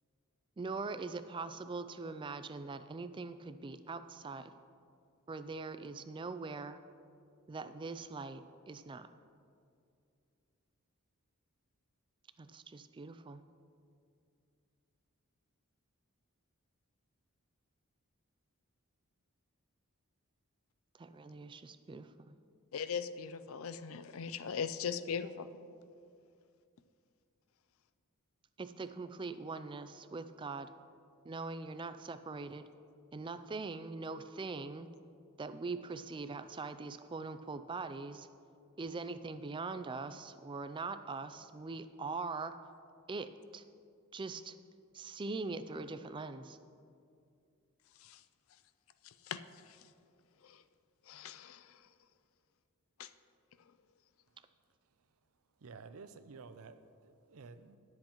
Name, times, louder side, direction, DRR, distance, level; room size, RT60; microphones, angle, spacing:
voice 1, 0.6-4.5 5.3-6.8 7.5-9.1 12.4-13.4 20.9-22.3 28.6-30.7 31.2-32.7 33.1-34.9 35.4-38.3 38.8-42.6 43.1-43.6 44.1-44.6 44.9-46.6, right 3 dB, 20° right, 11 dB, 0.3 m, -42 dB
voice 2, 22.7-25.5 48.0-48.2 49.0-49.4 49.7-49.8 50.4-50.6 51.1-51.8 53.0-53.1, left 6 dB, 70° left, 12 dB, 0.4 m, -40 dB
voice 3, 55.6-57.8, right 4 dB, 75° right, 11 dB, 0.5 m, -52 dB
19.0 x 7.7 x 3.0 m, 2.5 s
head